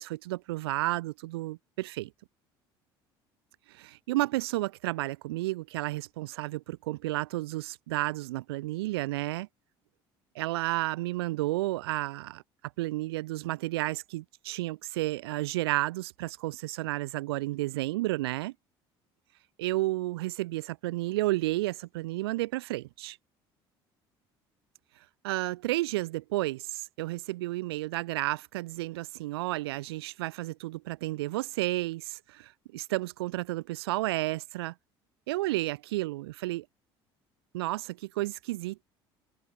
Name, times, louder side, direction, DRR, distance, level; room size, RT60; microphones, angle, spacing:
voice 1, 0.0-2.1 3.7-9.5 10.3-12.4 12.8-18.5 19.6-23.2 25.2-34.7 35.3-36.6 37.5-38.8, right 18 dB, 85° right, 1.3 m, -32 dB
hypercardioid pair, 70°, 13 cm